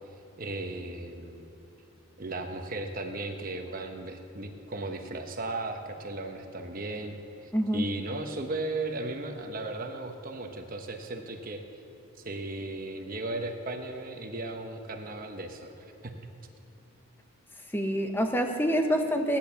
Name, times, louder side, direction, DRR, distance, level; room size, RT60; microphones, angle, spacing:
voice 1, 0.4-1.5 2.2-7.2 7.4-11.6 12.2-15.7 16.0-16.2, right 2 dB, 45° right, 4 dB, 1.0 m, -36 dB
voice 2, 7.5-7.9 17.7-19.4, equal, 10° left, 4 dB, 1.0 m, -26 dB
17.0 x 10.5 x 7.0 m, 3.0 s
head